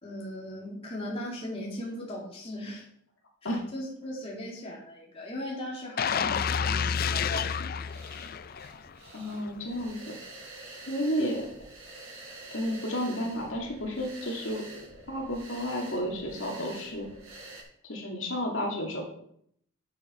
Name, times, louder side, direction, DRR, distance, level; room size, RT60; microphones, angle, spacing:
voice 1, 0.0-2.8 3.4-7.9, left 1 dB, 25° left, -4 dB, 2.3 m, -38 dB
sound 1, 6.0-8.9 9.3-9.5, left 7 dB, 45° left, 0.4 m, -29 dB
sound 2, 7.3-17.6, right 2 dB, 85° right, 4.3 m, -47 dB
voice 2, 9.1-10.0 10.6-11.4 12.5-14.6 15.1-17.1 17.8-19.0, equal, 65° left, -1 dB, 2.4 m, -32 dB
8.8 x 7.5 x 5.1 m, 0.69 s
head